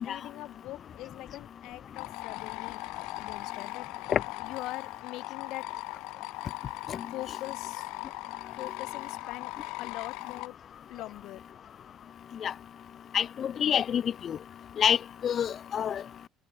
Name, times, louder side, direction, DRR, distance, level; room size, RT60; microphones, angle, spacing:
voice 1, 0.0-2.9 3.2-3.9 4.4-5.7 7.1-7.9 8.6-9.5 9.8-10.6 10.9-11.4, left 17 dB, 60° left, 4.9 m, -42 dB
sound 1, 1.9-10.5, left 24 dB, 75° left, 1.4 m, -39 dB
voice 2, 13.1-14.4 14.8-15.0 15.2-16.0, left 9 dB, 35° left, 0.5 m, -27 dB
cardioid pair, 160°, 0 cm